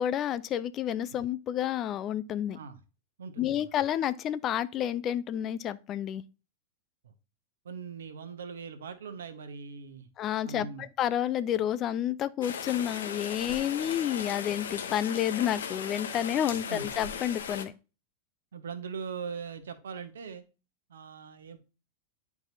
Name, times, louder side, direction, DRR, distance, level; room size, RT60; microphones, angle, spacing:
voice 1, 0.0-2.6 3.4-6.2 10.2-17.7, left 10 dB, 30° left, 0.4 m, -30 dB
voice 2, 3.2-3.6 7.0-7.1 7.6-10.1 10.4-10.8 16.7-16.9 18.5-20.4 20.9-21.6, right 6 dB, 65° right, 1.0 m, -40 dB
Rain, 12.4-17.6, left 7 dB, 65° left, 0.8 m, -37 dB
10.5 x 4.7 x 2.7 m
figure-of-eight pair, 90°, 0 cm